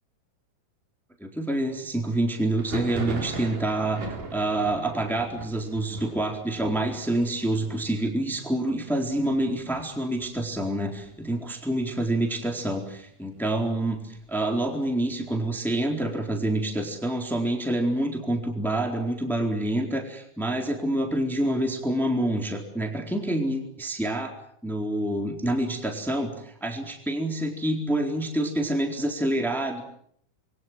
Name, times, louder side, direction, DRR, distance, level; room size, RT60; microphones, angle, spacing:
voice 1, 1.2-24.3 24.6-29.8, right 1 dB, ahead, 2 dB, 3.8 m, -27 dB
Thunder, 2.5-12.1 12.3-13.0 13.3-14.3 14.7-16.4, right 4 dB, 70° right, 5.5 m, -40 dB
28.0 x 22.5 x 7.7 m, 0.68 s
omnidirectional pair, 3.7 m